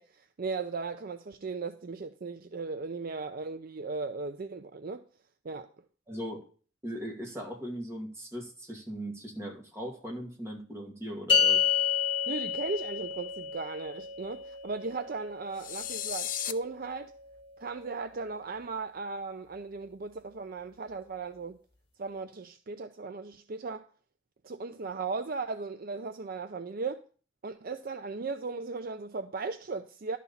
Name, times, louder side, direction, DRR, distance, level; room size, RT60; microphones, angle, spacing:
voice 1, 0.0-5.0 5.4-5.7 12.3-17.1 17.6-21.6 22.0-23.9 24.4-27.0 27.4-30.2, right 4 dB, 50° right, 0.5 m, -37 dB
voice 2, 6.1-6.4 6.8-11.6, equal, 15° right, 2.2 m, -39 dB
sound 1, 11.3-17.8, left 7 dB, 25° left, 1.5 m, -31 dB
sound 2, 15.6-16.5, left 10 dB, 45° left, 0.5 m, -34 dB
11.5 x 4.2 x 7.1 m
head